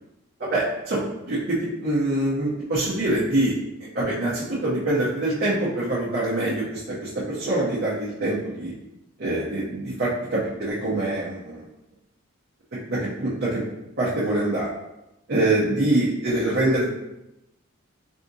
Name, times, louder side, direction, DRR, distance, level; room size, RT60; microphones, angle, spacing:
voice 1, 0.4-3.5 3.8-8.7 9.2-11.7 12.9-13.6 14.0-14.7 15.3-16.9, right 1 dB, 50° right, -8 dB, 0.7 m, -24 dB
3.5 x 2.7 x 2.6 m, 0.92 s
head